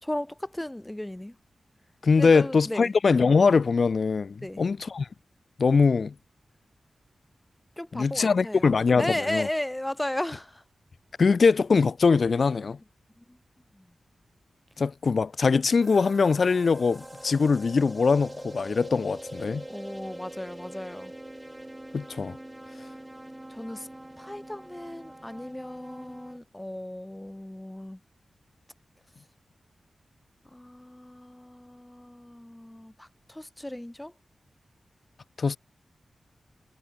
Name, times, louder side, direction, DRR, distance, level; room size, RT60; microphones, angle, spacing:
voice 1, 0.0-1.4 2.2-2.9 4.4-4.6 7.8-10.6 13.2-13.4 13.7-13.9 19.7-21.1 23.5-23.9 24.2-28.0 30.4-34.1, left 1 dB, 10° left, 4.5 m, -35 dB
voice 2, 2.0-5.1 5.6-6.1 7.9-9.5 11.2-12.8 14.8-19.6 21.9-22.4 35.4-35.6, left 4 dB, 65° left, 1.3 m, -22 dB
sound 1, 15.8-26.4, right 1 dB, 15° right, 3.9 m, -43 dB
cardioid pair, 65°, 0 cm